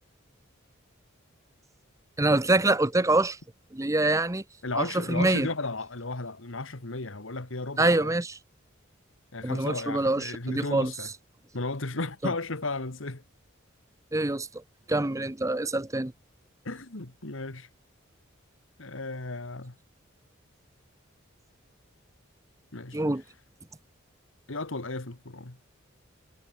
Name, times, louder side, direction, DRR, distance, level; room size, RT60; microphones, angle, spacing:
voice 1, 2.2-3.4 3.7-4.4 4.8-5.5 7.8-8.3 9.4-10.9 14.1-14.6 14.9-16.1 22.9-23.2, right 2 dB, 15° right, 0.8 m, -25 dB
voice 2, 4.6-8.1 9.3-11.1 11.5-13.2 16.6-17.7 18.8-19.8 22.7-23.0 24.5-25.6, left 3 dB, 70° left, 1.9 m, -34 dB
head